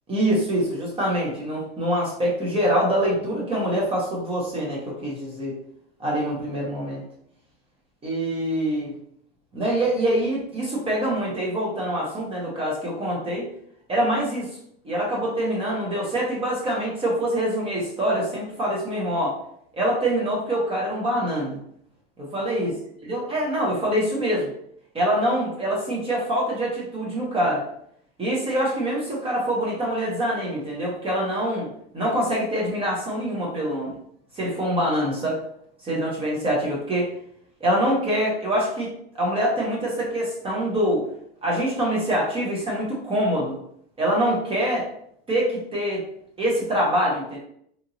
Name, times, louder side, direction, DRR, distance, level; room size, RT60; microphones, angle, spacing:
voice 1, 0.1-5.6 6.0-7.0 8.0-8.9 9.5-13.5 13.9-14.5 14.8-19.4 19.7-21.6 22.2-22.7 23.1-24.5 24.9-27.7 28.2-31.7 31.9-34.0 34.3-35.4 35.8-37.1 37.6-38.9 39.1-41.0 41.4-43.6 44.0-44.9 45.3-46.0 46.4-47.4, right 1 dB, 20° right, -4 dB, 0.9 m, -25 dB
3.0 x 2.5 x 2.6 m, 0.68 s
supercardioid pair, 130°, 31 cm